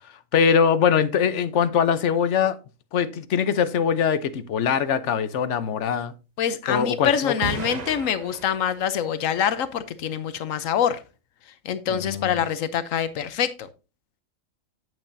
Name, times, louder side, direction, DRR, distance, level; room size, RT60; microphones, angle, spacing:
voice 1, 0.3-2.6 2.9-6.1 6.7-7.3 11.9-12.4, left 7 dB, 65° left, 1.1 m, -22 dB
voice 2, 6.4-11.0 11.6-13.7, left 8 dB, 90° left, 1.2 m, -25 dB
sound 1, 7.4-9.0, right 3 dB, 40° right, 0.8 m, -34 dB
9.1 x 8.7 x 2.7 m
omnidirectional pair, 1.3 m